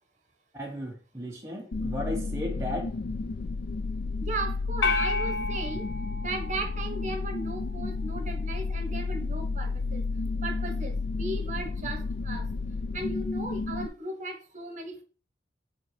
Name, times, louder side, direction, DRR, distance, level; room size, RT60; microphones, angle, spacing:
voice 1, 0.5-2.9, left 1 dB, 15° right, 0.8 m, -35 dB
sound 1, 1.7-13.9, left 3 dB, 60° left, 0.4 m, -32 dB
voice 2, 4.2-5.9 6.2-10.0 10.4-12.5 12.9-15.0, right 2 dB, 40° right, 1.2 m, -36 dB
sound 2, 4.8-7.3, left 3 dB, 85° left, 0.8 m, -31 dB
6.1 x 3.6 x 5.6 m
head